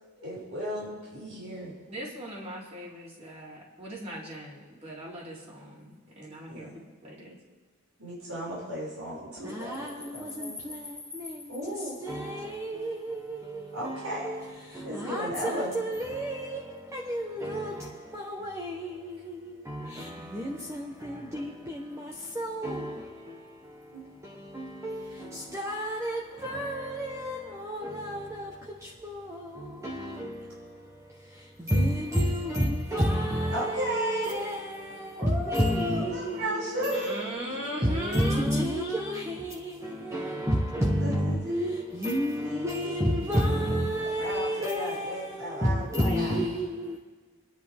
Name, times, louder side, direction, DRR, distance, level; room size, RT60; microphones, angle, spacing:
voice 1, 0.2-1.7 6.5-6.8 8.0-10.6 11.5-12.0 13.7-14.3 14.8-15.7 23.9-24.7 25.5-25.7 33.5-34.5 35.2-37.2 39.9-40.0 41.0-41.8 42.4-46.4, equal, 85° right, 6.4 m, -35 dB
voice 2, 1.9-6.7 7.0-7.4 36.9-38.5, equal, 30° right, 3.7 m, -39 dB
voice 3, 9.4-37.1 37.6-41.6 41.9-47.0, equal, 15° right, 1.1 m, -31 dB
29.5 x 10.5 x 3.6 m
head